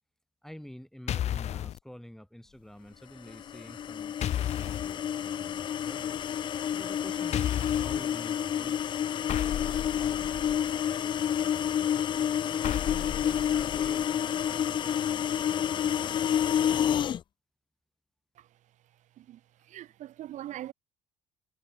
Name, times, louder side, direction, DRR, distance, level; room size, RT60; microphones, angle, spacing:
voice 1, 0.4-6.2 6.7-8.8 9.4-16.9, equal, 5° left, 3.3 m, -49 dB
sound 1, 1.1-1.8 4.2-4.9 7.3-8.0 9.3-10.7 12.6-14.1, left 11 dB, 50° left, 0.9 m, -33 dB
sound 2, 3.3-17.2, left 9 dB, 35° left, 0.3 m, -29 dB
voice 2, 19.1-20.7, right 13 dB, 55° right, 1.5 m, -42 dB
hypercardioid pair, 60°, 15 cm